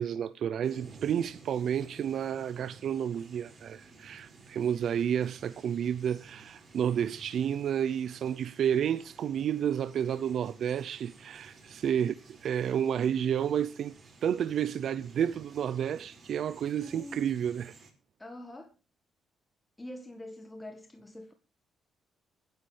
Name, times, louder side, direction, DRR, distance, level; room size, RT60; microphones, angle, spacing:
voice 1, 0.0-17.7, right 9 dB, 65° right, 0.6 m, -31 dB
sound 1, 0.6-17.9, right 3 dB, 45° right, 5.3 m, -54 dB
voice 2, 16.8-17.3 18.2-18.8 19.8-21.3, left 1 dB, 15° left, 1.6 m, -45 dB
23.0 x 10.5 x 3.4 m
cardioid pair, 90°, 0 cm